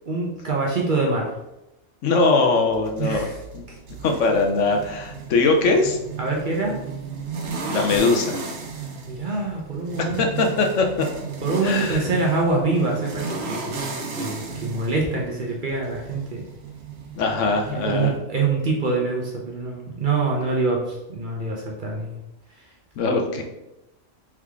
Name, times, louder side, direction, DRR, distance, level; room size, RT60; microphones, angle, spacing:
voice 1, 0.1-1.3 3.0-3.4 3.7-3.8 6.2-6.8 9.1-10.5 11.4-13.9 14.2-16.4 17.9-22.1, right 3 dB, 50° right, -1 dB, 0.7 m, -25 dB
voice 2, 2.0-3.3 3.5-3.6 4.0-6.0 7.7-8.4 10.0-11.1 11.6-12.0 17.2-18.1 23.0-23.4, left 3 dB, 75° left, 3 dB, 0.9 m, -21 dB
sound 1, 2.7-18.2, right 4 dB, 85° right, 1.1 m, -35 dB
3.6 x 3.1 x 3.4 m, 0.94 s
omnidirectional pair, 1.3 m